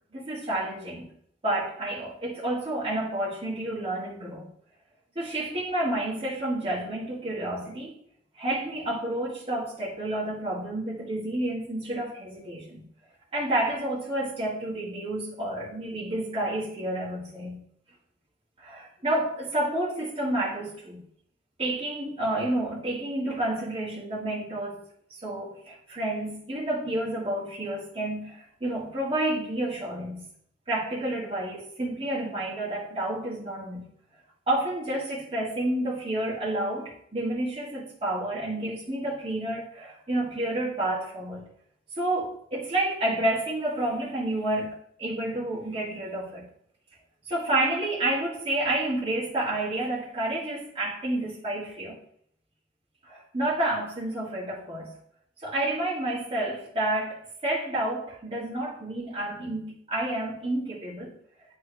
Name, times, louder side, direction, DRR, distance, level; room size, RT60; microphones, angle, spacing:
voice 1, 0.1-1.1 1.4-4.5 5.2-8.0 8.4-12.8 13.3-17.6 18.6-21.1 21.6-24.8 25.1-30.3 30.7-33.9 34.5-41.5 42.0-46.5 47.2-52.0 53.0-54.9 55.4-61.1, right 1 dB, 30° right, 1.7 m, -30 dB
10.0 x 3.5 x 3.3 m
head